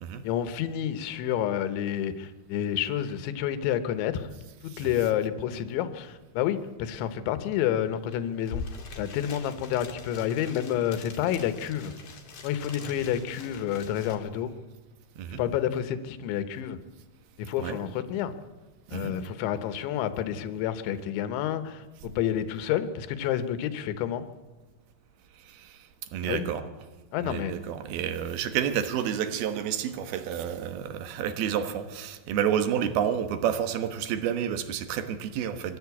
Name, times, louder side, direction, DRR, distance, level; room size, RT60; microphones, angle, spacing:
voice 1, 0.2-4.3 4.6-8.6 9.0-11.9 12.4-14.5 15.4-16.8 17.4-18.3 18.9-24.3 26.3-26.5 27.1-27.5, left 10 dB, 75° left, 11 dB, 3.4 m, -29 dB
voice 2, 4.7-5.0 15.2-15.4 17.6-17.8 18.9-19.1 25.4-25.8 26.1-26.6 27.2-35.8, right 9 dB, 65° right, 9 dB, 2.8 m, -30 dB
sound 1, 8.1-8.2 8.4-14.1, left 4 dB, 35° left, 3.2 m, -43 dB
23.5 x 14.0 x 8.4 m, 1.3 s
omnidirectional pair, 5.6 m